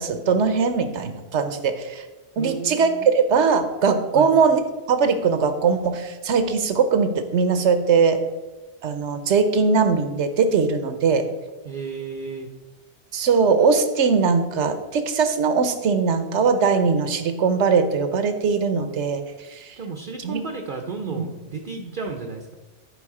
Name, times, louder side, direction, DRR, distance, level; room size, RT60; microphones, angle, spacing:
voice 1, 0.0-2.0 2.4-4.6 4.9-8.2 8.8-11.3 13.1-19.2 19.5-19.7 20.2-20.4 21.1-21.2 21.8-21.9, right 5 dB, 70° right, 9 dB, 1.1 m, -20 dB
voice 2, 2.4-3.1 4.1-4.3 11.6-12.5 19.8-22.5, right 4 dB, 50° right, 3 dB, 0.8 m, -33 dB
10.5 x 4.9 x 4.8 m, 1.2 s
omnidirectional pair, 1.2 m